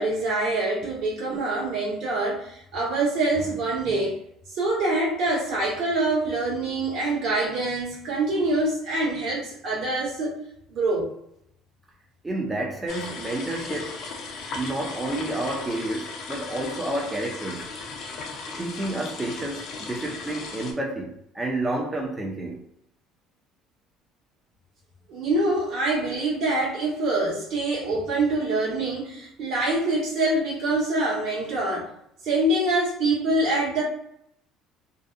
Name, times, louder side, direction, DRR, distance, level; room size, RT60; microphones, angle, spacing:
voice 1, 0.0-4.2 4.5-10.4 10.7-11.1 25.1-31.9 32.2-33.8, right 2 dB, 55° right, 1.2 m, -25 dB
voice 2, 12.2-14.0 14.5-17.7 18.6-22.6, right 1 dB, 15° right, 0.4 m, -30 dB
sound 1, 12.9-20.7, left 3 dB, 55° left, 0.5 m, -37 dB
2.6 x 2.1 x 2.4 m
cardioid pair, 155°, 0 cm